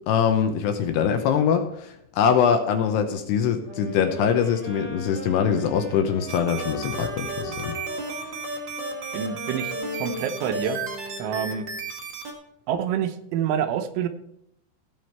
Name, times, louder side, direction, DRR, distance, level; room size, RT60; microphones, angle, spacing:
voice 1, 0.1-7.7, left 7 dB, 75° left, 6 dB, 2.7 m, -23 dB
sound 1, 3.6-11.8, equal, 30° right, 3.5 m, -38 dB
sound 2, 6.3-12.3, right 3 dB, 70° right, 1.1 m, -33 dB
voice 2, 9.1-9.7 10.0-10.8 11.2-11.7 12.7-14.1, right 8 dB, 90° right, 8 dB, 3.3 m, -27 dB
16.5 x 6.3 x 4.3 m, 0.77 s
omnidirectional pair, 5.4 m